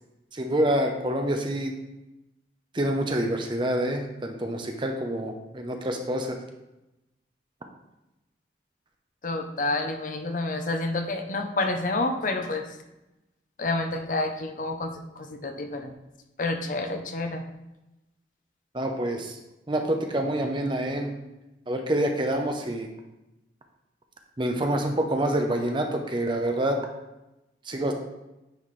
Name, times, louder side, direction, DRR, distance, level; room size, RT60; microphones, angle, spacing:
voice 1, 0.3-1.7 2.7-6.4 18.7-19.4 19.7-21.1 21.7-22.9 24.4-26.8 27.7-27.9, right 1 dB, 25° right, 4 dB, 0.6 m, -27 dB
voice 2, 9.2-12.7 13.6-15.9 16.4-17.4, left 2 dB, 45° left, 5 dB, 0.6 m, -29 dB
9.3 x 4.2 x 3.2 m, 0.96 s
head